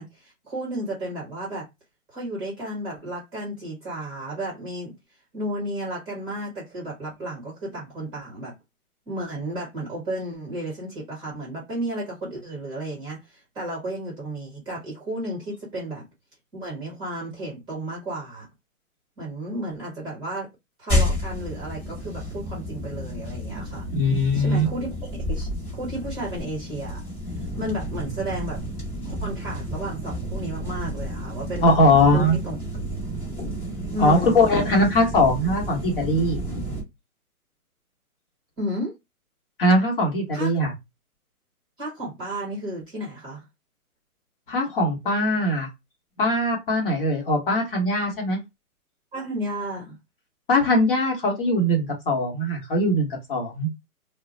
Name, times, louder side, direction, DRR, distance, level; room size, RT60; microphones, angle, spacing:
voice 1, 0.0-1.6 2.1-4.9 5.3-8.5 9.1-16.1 16.5-18.5 19.2-20.5 20.8-23.9 24.3-27.0 27.3-28.6 29.1-32.6 33.9-34.4 38.6-38.9 40.3-40.5 41.8-43.4 49.1-50.0, right 1 dB, 10° right, 0.9 m, -33 dB
sound 1, 20.9-36.8, equal, 15° left, 1.0 m, -31 dB
voice 2, 23.9-24.6 31.6-32.4 34.0-36.4 39.6-40.7 44.5-45.7 46.2-48.4 50.5-53.7, left 1 dB, 40° left, 1.1 m, -21 dB
2.3 x 2.1 x 3.8 m
hypercardioid pair, 150°, 44 cm